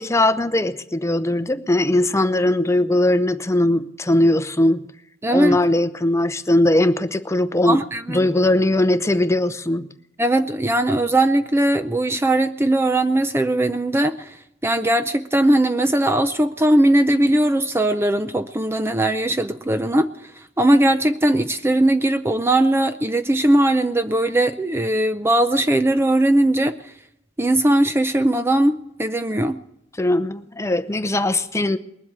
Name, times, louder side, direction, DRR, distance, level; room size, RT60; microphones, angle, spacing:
voice 1, 0.0-4.8 5.3-7.8 8.1-9.9 30.0-31.8, left 1 dB, 15° left, 12 dB, 0.7 m, -19 dB
voice 2, 5.2-5.6 7.7-8.2 10.2-14.3 14.6-20.1 20.6-26.7 27.4-29.6, right 1 dB, 15° right, 9 dB, 0.5 m, -19 dB
21.0 x 7.8 x 8.6 m, 0.78 s
head